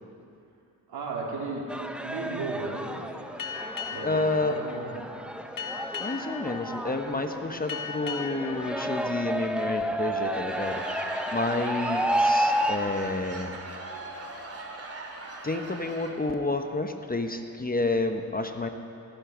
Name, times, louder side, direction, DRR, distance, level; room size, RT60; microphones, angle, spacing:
voice 1, 0.9-1.7 2.0-2.9 3.9-5.0 11.4-11.5, right 3 dB, 70° right, -2 dB, 3.4 m, -35 dB
sound 1, 1.7-12.8, right 1 dB, 5° right, 1.0 m, -31 dB
Boat Water vehicle, 3.4-10.5, left 5 dB, 55° left, 1.5 m, -40 dB
voice 2, 4.0-4.5 6.0-13.6 15.4-18.7, left 2 dB, 20° left, 6 dB, 1.3 m, -30 dB
Laughter / Crowd, 10.1-16.4, right 2 dB, 35° right, 2.5 m, -40 dB
17.5 x 10.5 x 6.3 m, 2.5 s
supercardioid pair, 55°, 39 cm